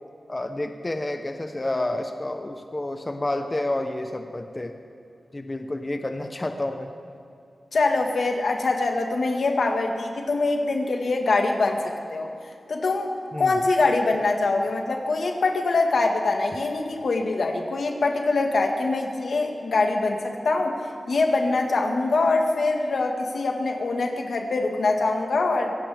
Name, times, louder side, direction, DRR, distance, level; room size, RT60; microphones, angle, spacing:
voice 1, 0.3-4.7 5.3-6.9 13.3-13.5, left 1 dB, 25° left, 5 dB, 1.0 m, -29 dB
voice 2, 7.7-12.3 12.7-13.1 13.4-20.8 21.1-25.7, left 3 dB, 80° left, 2 dB, 1.7 m, -24 dB
24.0 x 16.5 x 3.6 m, 2.5 s
wide cardioid pair, 80°, 0 cm